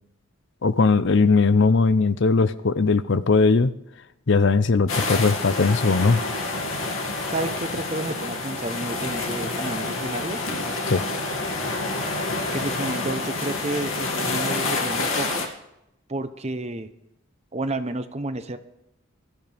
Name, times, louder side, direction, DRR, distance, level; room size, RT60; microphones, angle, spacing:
voice 1, 0.6-3.7 4.3-6.2 10.9-11.0, left 4 dB, 55° left, 14 dB, 0.6 m, -19 dB
sound 1, 4.9-15.5, left 3 dB, 75° left, 2.2 m, -28 dB
voice 2, 7.3-10.4 12.5-15.5 16.1-16.9 17.5-18.6, right 2 dB, 30° right, 9 dB, 0.9 m, -30 dB
22.5 x 13.5 x 3.5 m, 0.85 s
head